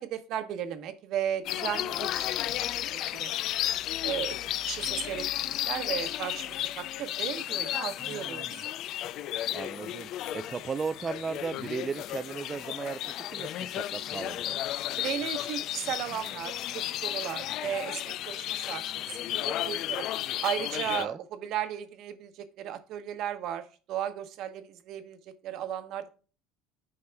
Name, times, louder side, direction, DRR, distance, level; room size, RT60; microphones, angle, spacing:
voice 1, 0.0-2.7 3.1-3.3 4.0-4.4 4.7-8.7 15.0-20.1 20.4-25.2 25.4-26.0, right 10 dB, 60° right, 10 dB, 1.0 m, -35 dB
sound 1, 1.4-21.0, left 13 dB, 55° left, 0.3 m, -33 dB
voice 2, 8.0-8.6 9.5-14.6 21.0-21.2, right 5 dB, 25° right, 10 dB, 0.3 m, -36 dB
9.4 x 5.7 x 2.2 m, 0.35 s
supercardioid pair, 120°, 0 cm